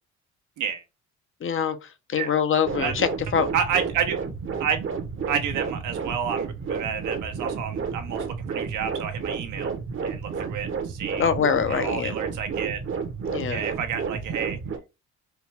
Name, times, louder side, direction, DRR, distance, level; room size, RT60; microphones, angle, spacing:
voice 1, 1.4-3.5 11.2-12.1 13.2-13.6, left 7 dB, 45° left, 0.6 m, -24 dB
sound 1, 2.6-14.8, right 5 dB, 45° right, 0.8 m, -31 dB
voice 2, 3.5-4.2 4.6-4.8 5.3-9.7 10.0-11.2 11.7-12.8 13.5-14.6, right 7 dB, 85° right, 1.0 m, -30 dB
4.5 x 2.2 x 3.3 m
cardioid pair, 90°, 30 cm